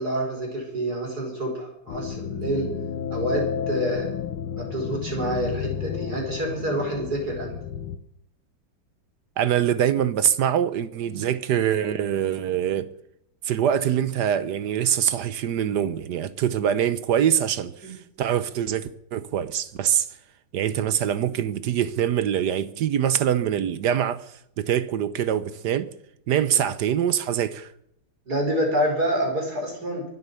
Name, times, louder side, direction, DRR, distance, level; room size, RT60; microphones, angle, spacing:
voice 1, 0.0-2.7 3.1-4.1 4.6-7.6 11.0-11.2 17.8-17.9 26.5-26.6 28.3-30.0, right 1 dB, 45° right, 5.3 m, -27 dB
sound 1, 1.9-8.0, left 8 dB, 85° left, 1.7 m, -31 dB
voice 2, 9.4-12.9 13.4-20.1 20.5-24.2 24.6-25.9 26.3-27.7, right 9 dB, 65° right, 1.2 m, -24 dB
24.0 x 8.3 x 6.9 m
omnidirectional pair, 2.3 m